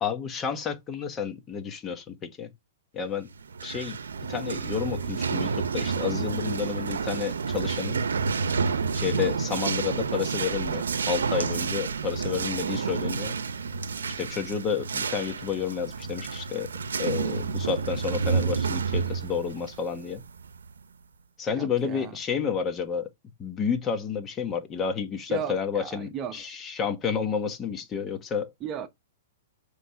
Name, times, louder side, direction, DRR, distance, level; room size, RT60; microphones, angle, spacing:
voice 1, 0.0-2.5 2.9-3.3 3.6-4.0 4.3-8.0 8.9-13.4 14.1-16.7 17.0-20.2 21.4-23.1 23.4-28.5, left 7 dB, 25° left, 1.1 m, -30 dB
sound 1, 3.4-20.8, right 5 dB, 85° right, 0.7 m, -30 dB
voice 2, 21.5-22.2 25.3-26.4 28.6-28.9, right 8 dB, 25° right, 0.9 m, -36 dB
7.7 x 3.3 x 5.7 m
hypercardioid pair, 130°, 0 cm